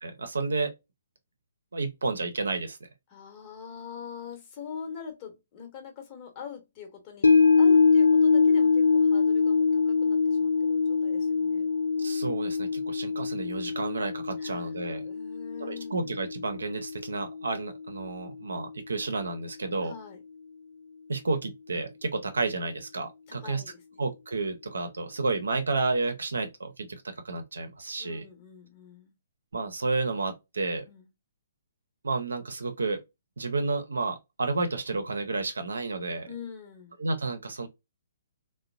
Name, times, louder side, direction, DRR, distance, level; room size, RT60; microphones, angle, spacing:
voice 1, 0.0-0.7 1.7-2.9 12.0-15.1 15.6-19.9 21.1-23.6 24.0-28.2 29.5-30.8 32.0-33.0 33.4-36.3 37.0-37.7, right 3 dB, 70° right, 0.7 m, -31 dB
voice 2, 3.1-11.7 14.4-14.7 15.0-16.1 19.8-20.2 23.3-24.0 28.0-29.1 30.9-31.1 36.3-37.0, left 6 dB, 30° left, 1.2 m, -43 dB
sound 1, 7.2-17.6 18.0-18.1, left 5 dB, 75° left, 0.3 m, -24 dB
3.6 x 2.2 x 2.3 m
figure-of-eight pair, 125°, 0 cm